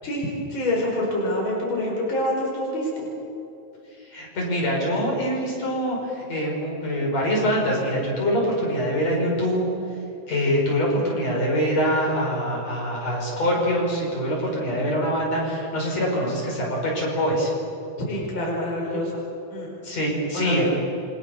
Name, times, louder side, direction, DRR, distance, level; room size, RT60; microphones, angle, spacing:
voice 1, 0.0-3.1 18.0-19.2 19.5-19.7 20.3-20.7, left 1 dB, 40° left, -3 dB, 5.8 m, -26 dB
voice 2, 4.1-9.7 10.3-17.5 19.8-20.7, equal, 55° left, -2 dB, 6.9 m, -24 dB
29.0 x 24.5 x 7.2 m, 2.8 s
omnidirectional pair, 3.5 m